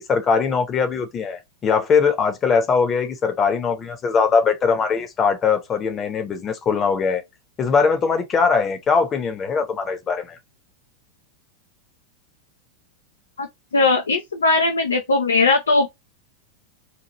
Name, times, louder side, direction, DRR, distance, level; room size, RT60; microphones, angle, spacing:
voice 1, 0.0-7.2 7.6-10.4, left 5 dB, 25° left, 0.8 m, -21 dB
voice 2, 13.7-15.9, left 3 dB, 70° left, 0.4 m, -19 dB
2.9 x 2.4 x 2.9 m
figure-of-eight pair, 90°, 0 cm